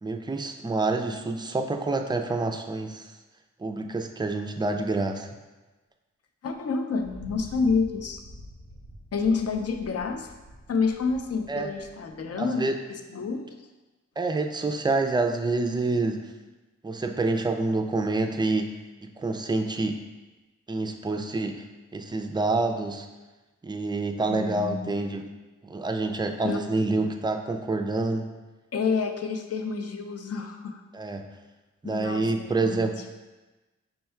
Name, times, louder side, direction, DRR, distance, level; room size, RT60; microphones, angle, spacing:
voice 1, 0.0-3.1 3.6-5.3 11.5-11.7 12.4-12.7 14.2-16.2 16.8-18.7 19.0-20.0 20.7-21.6 21.9-23.1 23.6-25.3 25.6-28.3 30.9-31.3 31.8-32.9, right 3 dB, 15° right, 5 dB, 0.4 m, -27 dB
voice 2, 6.4-8.2 9.1-10.3 10.7-12.6 12.9-13.5 14.6-14.8 24.3-24.8 26.4-26.6 27.0-27.1 28.7-30.8 31.8-33.0, left 5 dB, 55° left, 5 dB, 0.5 m, -29 dB
Thunder, 7.0-12.5, equal, 80° left, 1.2 m, -47 dB
5.5 x 2.2 x 4.3 m, 1.2 s
cardioid pair, 70°, 30 cm